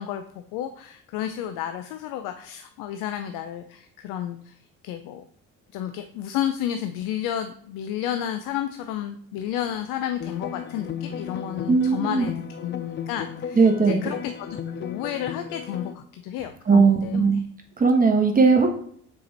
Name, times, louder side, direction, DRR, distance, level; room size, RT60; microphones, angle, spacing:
voice 1, 0.0-4.6 4.8-5.2 5.7-17.4, left 10 dB, 80° left, 8 dB, 0.6 m, -31 dB
sound 1, 10.2-15.9, left 7 dB, 35° left, 0.6 m, -35 dB
voice 2, 11.7-12.3 13.6-14.0 16.7-17.4 17.8-18.7, right 4 dB, 25° right, 3 dB, 1.1 m, -18 dB
6.0 x 4.8 x 4.1 m, 0.62 s
supercardioid pair, 75°, 32 cm